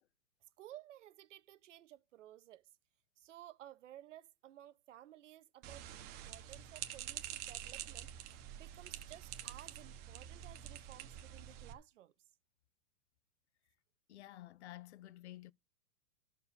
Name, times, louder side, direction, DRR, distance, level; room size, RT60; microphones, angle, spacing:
voice 1, 0.6-2.7 3.2-12.1, right 12 dB, 60° right, 1.1 m, -56 dB
sound 1, 5.6-11.7, right 11 dB, 25° right, 1.0 m, -47 dB
voice 2, 14.1-15.5, left 15 dB, 55° left, 0.6 m, -51 dB
12.0 x 4.7 x 7.0 m
hypercardioid pair, 155°, 41 cm